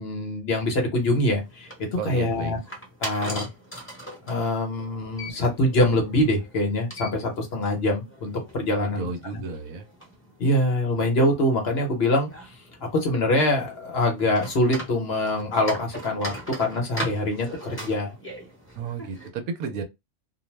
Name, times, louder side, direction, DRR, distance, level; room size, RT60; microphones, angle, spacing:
voice 1, 0.0-2.6 3.0-3.5 4.3-9.4 10.4-12.3 12.9-16.3 16.6-18.1, left 1 dB, 55° left, 0.9 m, -24 dB
sound 1, 1.3-19.3, right 1 dB, 10° left, 0.8 m, -41 dB
voice 2, 2.0-2.5 8.7-9.9 18.8-19.8, right 5 dB, 85° right, 1.1 m, -32 dB
2.6 x 2.1 x 3.1 m
omnidirectional pair, 1.4 m